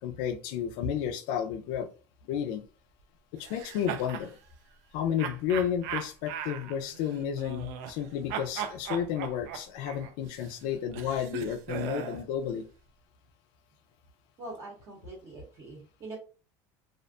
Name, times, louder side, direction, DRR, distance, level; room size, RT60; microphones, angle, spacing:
voice 1, 0.0-1.9 2.3-2.6 3.3-4.4 4.9-12.6, left 9 dB, 60° left, 0.4 m, -32 dB
sound 1, 3.4-4.3 5.2-8.0 8.3-12.2, right 9 dB, 70° right, 0.3 m, -38 dB
voice 2, 14.4-16.2, right 2 dB, 30° right, 0.8 m, -43 dB
2.4 x 2.1 x 2.4 m
cardioid pair, 170°, 9 cm